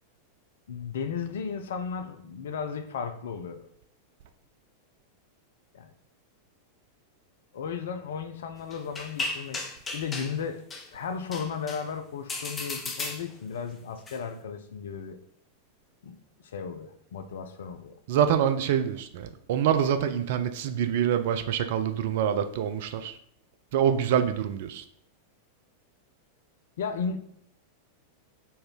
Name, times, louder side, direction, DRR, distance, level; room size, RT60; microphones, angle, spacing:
voice 1, 0.7-3.7 5.7-5.9 7.5-9.6 9.9-10.6 10.9-15.2 16.0-16.1 16.4-17.9 26.8-27.2, left 6 dB, 60° left, 8 dB, 0.5 m, -35 dB
sound 1, 8.7-10.4 10.7-10.9 11.3-11.8 12.3-13.5 14.1-14.2, left 3 dB, 20° left, 0.7 m, -35 dB
voice 2, 18.1-23.2 23.7-24.8, right 9 dB, 55° right, 9 dB, 0.4 m, -26 dB
4.2 x 3.3 x 3.7 m, 0.69 s
figure-of-eight pair, 90°, 0 cm